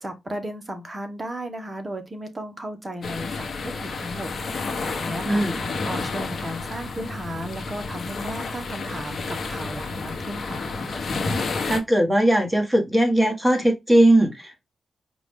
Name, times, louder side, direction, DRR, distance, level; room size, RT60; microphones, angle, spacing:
voice 1, 0.0-10.6, equal, 25° right, 1.1 m, -35 dB
sound 1, 3.0-11.8, left 3 dB, 55° left, 1.0 m, -30 dB
voice 2, 5.2-5.6 11.6-14.6, right 1 dB, 5° right, 1.4 m, -19 dB
4.9 x 2.5 x 3.5 m
cardioid pair, 90°, 0 cm